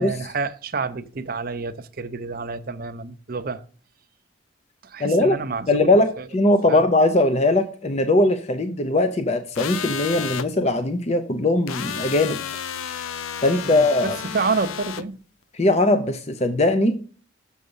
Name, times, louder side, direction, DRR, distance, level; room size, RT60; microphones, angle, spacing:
voice 1, 0.0-3.6 4.8-6.3 6.7-6.9 13.6-15.2, right 4 dB, 45° right, 0.6 m, -29 dB
voice 2, 5.0-5.4 5.7-12.4 13.4-14.2 15.6-17.0, left 2 dB, 35° left, 0.6 m, -20 dB
sound 1, 9.5-10.5 11.7-15.0, left 8 dB, 90° left, 0.5 m, -31 dB
6.9 x 6.4 x 5.4 m
head